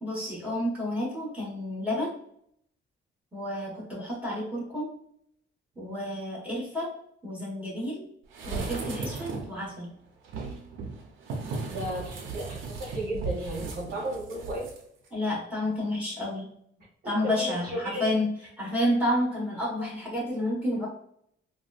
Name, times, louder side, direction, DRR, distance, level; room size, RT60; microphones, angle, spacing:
voice 1, 0.0-2.1 3.3-4.9 5.8-6.9 7.2-8.0 8.4-9.9 15.1-16.5 17.0-18.3 18.6-20.9, left 1 dB, 5° right, -6 dB, 1.4 m, -30 dB
sound 1, 8.3-9.6 10.2-14.8 15.1-15.2, right 4 dB, 85° right, 0.7 m, -36 dB
voice 2, 11.7-14.7 17.0-18.1, right 1 dB, 50° right, -2 dB, 1.4 m, -34 dB
4.0 x 2.3 x 2.4 m, 0.68 s
cardioid pair, 130°, 20 cm